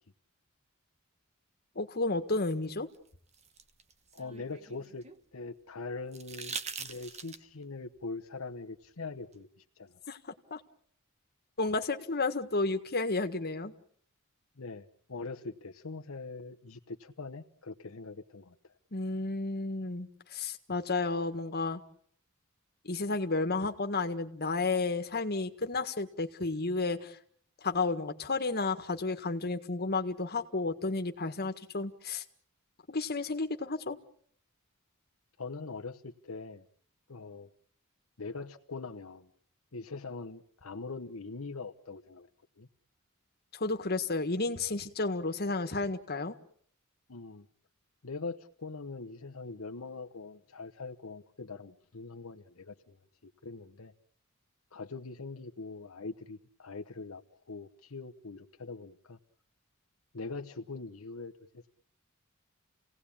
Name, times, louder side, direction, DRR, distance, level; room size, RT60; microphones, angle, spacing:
voice 1, 1.8-2.9 10.1-10.2 10.5-10.6 11.6-13.7 18.9-21.8 22.8-27.2 27.6-32.2 32.9-34.0 43.5-46.4, left 3 dB, 50° left, 6 dB, 1.7 m, -32 dB
sound 1, 2.9-5.2 6.1-7.6 9.3-9.4, right 5 dB, 30° right, 1.2 m, -43 dB
voice 2, 4.1-5.0 5.3-10.0 14.6-18.7 35.4-36.6 37.1-37.5 38.2-39.3 39.7-42.3 42.6-42.7 47.1-47.5 48.0-53.0 53.4-53.9 54.7-57.2 57.5-59.2 60.1-61.7, left 3 dB, 80° left, 4 dB, 1.0 m, -42 dB
29.0 x 17.5 x 8.6 m, 0.65 s
head